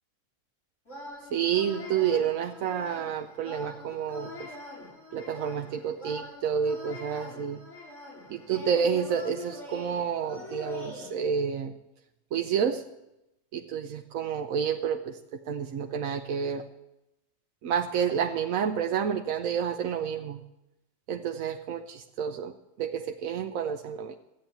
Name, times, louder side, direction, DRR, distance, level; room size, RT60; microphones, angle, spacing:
sound 1, 0.8-11.1, left 2 dB, 65° left, 5.8 m, -44 dB
voice 1, 1.3-4.5 5.1-7.6 8.3-11.7 12.3-12.8 13.5-16.6 17.6-20.4 21.1-22.5 22.8-24.1, right 7 dB, 85° right, 5 dB, 1.1 m, -29 dB
14.5 x 8.8 x 7.9 m, 0.91 s
omnidirectional pair, 1.4 m